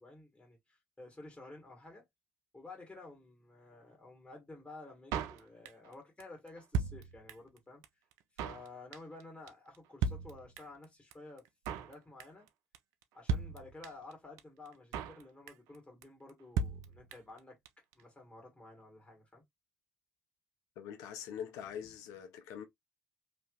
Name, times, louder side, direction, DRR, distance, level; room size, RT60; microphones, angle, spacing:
voice 1, 0.0-2.0 2.5-7.8 8.3-11.5 11.7-12.5 13.1-17.6 17.9-19.4, left 2 dB, 20° left, 1.6 m, -52 dB
Drum kit, 5.1-5.9 6.2-6.3 6.5-7.6 7.8-7.9 8.1-8.7 8.9-9.2 9.5-9.6 9.7-9.8 10.0-10.8 11.1-11.2 11.4-11.9 12.2-12.5 12.7-12.8 13.0-13.1 13.3-14.1 14.4-14.5 14.7-15.2 15.5-15.8 16.0-16.1 16.3-16.4 16.6-17.4 17.7-17.8 17.9-18.0, right 5 dB, 75° right, 0.4 m, -36 dB
voice 2, 20.8-22.6, left 8 dB, 75° left, 0.5 m, -43 dB
3.2 x 2.7 x 2.3 m
hypercardioid pair, 45°, 6 cm